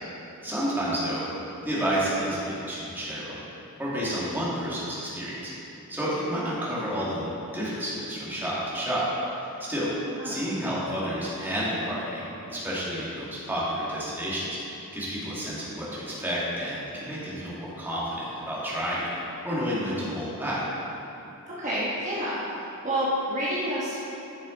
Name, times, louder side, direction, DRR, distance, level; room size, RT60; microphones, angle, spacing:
voice 1, 0.4-1.2 1.6-3.4 3.8-5.4 5.9-9.1 9.4-9.9 10.2-19.1 19.4-20.6, equal, 10° right, -9 dB, 2.1 m, -30 dB
voice 2, 21.5-22.4 22.8-24.0, equal, 35° right, -9 dB, 1.2 m, -28 dB
11.0 x 6.2 x 3.9 m, 2.9 s
head